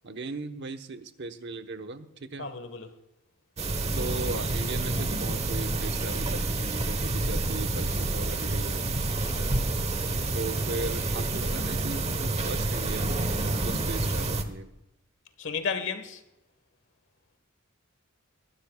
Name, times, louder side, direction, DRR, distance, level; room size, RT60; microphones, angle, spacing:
voice 1, 0.0-2.5 3.9-8.9 10.3-13.2 13.6-14.7, right 2 dB, 55° right, 1.0 m, -38 dB
voice 2, 2.4-2.9 9.2-9.7 15.4-16.2, left 5 dB, 60° left, 1.3 m, -34 dB
sound 1, 3.6-14.4, right 2 dB, 30° right, 1.0 m, -28 dB
22.5 x 12.0 x 2.3 m
head